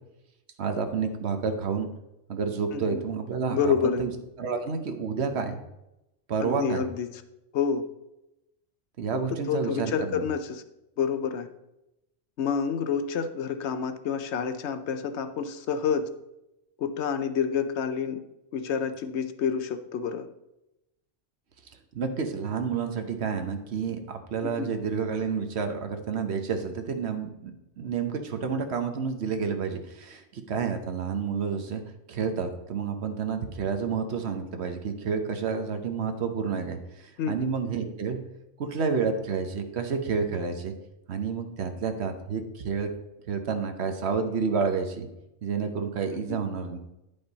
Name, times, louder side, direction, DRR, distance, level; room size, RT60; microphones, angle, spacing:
voice 1, 0.6-1.9 2.3-4.1 4.4-5.6 6.3-6.8 9.0-10.2 21.9-27.5 27.8-31.8 32.1-38.2 38.6-40.7 41.1-42.9 43.3-45.1 45.4-46.8, right 5 dB, 60° right, 7 dB, 1.1 m, -29 dB
voice 2, 3.5-4.0 6.4-7.2 7.5-7.8 9.5-10.6 11.0-11.5 12.4-16.1 16.8-18.2 18.5-20.3 24.4-24.7 37.2-37.3 46.1-46.4, left 6 dB, 70° left, 10 dB, 0.9 m, -28 dB
9.9 x 5.3 x 4.0 m, 0.90 s
omnidirectional pair, 1.3 m